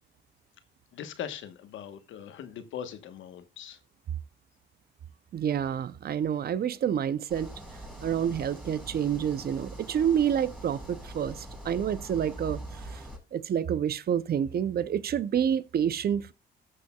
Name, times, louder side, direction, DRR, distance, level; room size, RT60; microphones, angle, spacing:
voice 1, 0.9-3.8, left 9 dB, 80° left, 1.2 m, -40 dB
voice 2, 5.3-7.5 8.0-12.6 12.9-13.0 13.3-16.3, right 9 dB, 50° right, 0.6 m, -28 dB
sound 1, 7.3-13.2, right 1 dB, 5° right, 5.2 m, -43 dB
18.0 x 6.6 x 2.3 m
cardioid pair, 90°, 20 cm